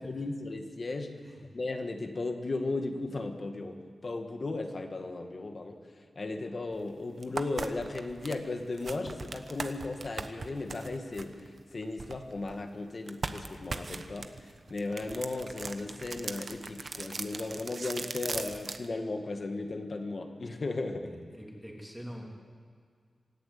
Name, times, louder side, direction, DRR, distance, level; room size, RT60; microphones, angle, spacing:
voice 1, 0.0-1.2 1.5-3.8 4.0-5.8 6.2-21.1, left 2 dB, 40° left, 5 dB, 1.9 m, -36 dB
sound 1, 6.7-6.8 7.2-12.6 13.1-18.9, right 4 dB, 45° right, 1.0 m, -39 dB
voice 2, 20.9-22.3, equal, ahead, -2 dB, 3.1 m, -45 dB
26.5 x 11.0 x 8.7 m, 2.1 s
wide cardioid pair, 145°, 0 cm